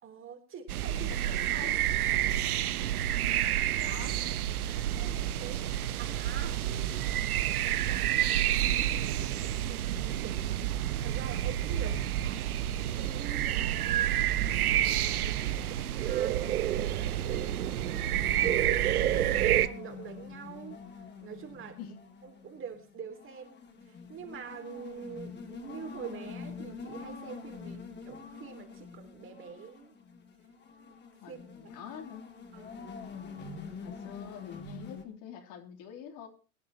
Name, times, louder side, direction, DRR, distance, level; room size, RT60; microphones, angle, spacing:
voice 1, 0.0-1.7 3.1-3.5 3.8-4.0 5.0-5.7 6.0-10.4 10.8-12.4 12.8-14.1 14.5-17.6 18.3-20.8 21.2-21.8 22.2-23.6 23.9-29.9 31.3-31.7 32.5-32.8, right 7 dB, 25° right, 5 dB, 3.4 m, -45 dB
sound 1, 0.7-19.7, right 12 dB, 75° right, 1.1 m, -29 dB
voice 2, 0.9-1.9 3.8-4.2 11.8-12.5 15.4-15.7 18.0-18.7 21.8-22.0 31.2-32.3 33.4-36.3, left 8 dB, 45° left, 2 dB, 3.4 m, -47 dB
sound 2, 16.2-35.0, left 5 dB, 25° left, 3.0 m, -46 dB
24.0 x 10.5 x 3.0 m, 0.35 s
hypercardioid pair, 105°, 45 cm